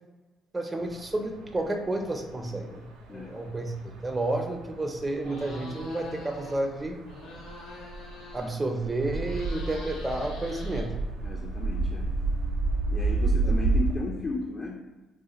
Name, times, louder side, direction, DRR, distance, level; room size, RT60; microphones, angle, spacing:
voice 1, 0.5-7.0 8.3-10.9 13.4-13.5, right 2 dB, 25° right, 4 dB, 0.5 m, -31 dB
sound 1, 0.8-13.9, right 3 dB, 85° right, 0.4 m, -32 dB
sound 2, 5.2-6.6 6.9-8.7 9.1-11.3, left 2 dB, 80° left, 0.7 m, -44 dB
voice 2, 11.2-12.1 12.9-14.8, left 3 dB, 40° left, 1 dB, 0.4 m, -34 dB
2.4 x 2.3 x 3.9 m, 1.2 s
hypercardioid pair, 55°, 0 cm